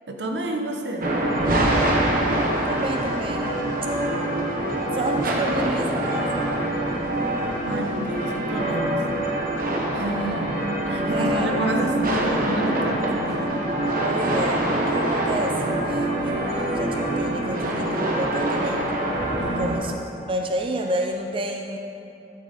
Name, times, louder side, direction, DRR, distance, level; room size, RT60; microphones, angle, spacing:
voice 1, 0.1-1.1 7.7-9.0 9.9-10.5 10.9-13.6 19.4-19.8, right 1 dB, 80° right, 3 dB, 1.0 m, -29 dB
sound 1, 1.0-19.8, right 1 dB, 55° right, 1.1 m, -24 dB
voice 2, 2.6-3.5 4.9-6.5 9.4-9.7 11.1-11.7 12.2-12.4 14.0-18.9 19.6-20.0 20.3-21.8, right 1 dB, 30° right, 3 dB, 0.4 m, -30 dB
11.0 x 7.5 x 4.1 m, 2.7 s
head